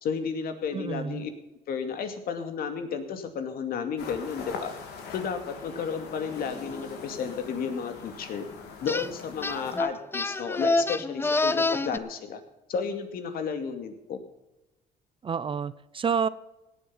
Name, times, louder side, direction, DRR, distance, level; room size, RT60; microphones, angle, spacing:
voice 1, 0.0-1.3 1.7-4.7 5.1-8.4 8.8-12.4 12.7-14.2, left 6 dB, 60° left, 7 dB, 2.3 m, -32 dB
voice 2, 0.7-1.3 15.2-16.3, right 6 dB, 30° right, 16 dB, 0.6 m, -29 dB
sound 1, 4.0-9.8, left 5 dB, 80° left, 3.2 m, -42 dB
sound 2, 8.9-9.1 9.4-12.0, left 2 dB, 15° left, 0.6 m, -27 dB
17.0 x 8.9 x 5.7 m, 0.96 s
cardioid pair, 110°, 17 cm